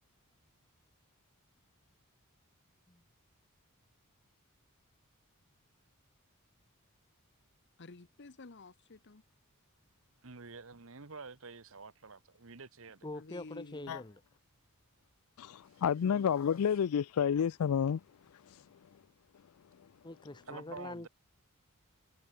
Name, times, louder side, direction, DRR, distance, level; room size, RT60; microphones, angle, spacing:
voice 1, 7.8-9.2 13.1-14.0 16.0-16.3, left 3 dB, 55° left, 1.0 m, -51 dB
voice 2, 10.2-13.1 15.7-15.8 20.5-21.1, right 4 dB, 65° right, 1.3 m, -48 dB
voice 3, 13.0-14.2 20.0-21.1, left 2 dB, 20° left, 0.9 m, -44 dB
voice 4, 15.4-18.0 18.3-18.8 19.8-19.9, left 8 dB, 75° left, 0.4 m, -31 dB
head